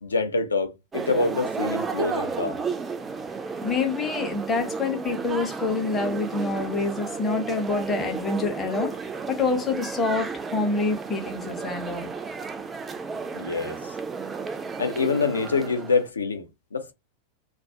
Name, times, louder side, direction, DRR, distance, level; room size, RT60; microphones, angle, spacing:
voice 1, 0.0-2.6 13.3-13.9 14.8-16.5 16.7-16.9, left 4 dB, 75° left, 0.4 m, -26 dB
sound 1, 0.9-16.1, right 5 dB, 15° right, 0.3 m, -33 dB
voice 2, 3.6-12.1, left 3 dB, 20° left, 0.6 m, -27 dB
2.3 x 2.1 x 2.6 m
figure-of-eight pair, 90°, 0 cm